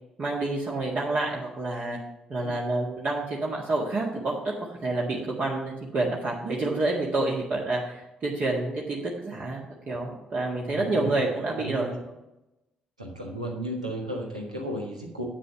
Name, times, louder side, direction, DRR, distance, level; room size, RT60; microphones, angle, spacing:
voice 1, 0.2-2.0 2.3-12.0, right 2 dB, 45° right, -3 dB, 1.8 m, -28 dB
voice 2, 10.7-11.1 11.6-11.9 13.0-15.2, right 1 dB, 90° right, 0 dB, 1.4 m, -34 dB
8.3 x 7.4 x 5.8 m, 0.95 s
figure-of-eight pair, 45°, 4 cm